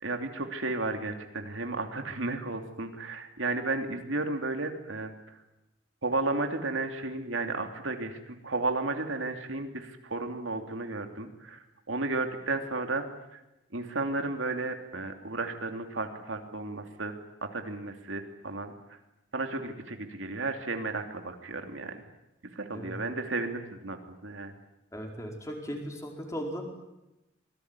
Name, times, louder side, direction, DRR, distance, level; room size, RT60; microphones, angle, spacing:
voice 1, 0.0-5.1 6.0-11.6 11.9-13.0 13.3-13.4 13.7-17.1 17.4-19.0 19.3-22.0 22.5-24.0 24.2-24.5, right 3 dB, 75° right, 5 dB, 3.0 m, -33 dB
voice 2, 24.9-26.6, equal, 15° left, 2 dB, 4.7 m, -37 dB
26.5 x 20.5 x 9.9 m, 0.95 s
head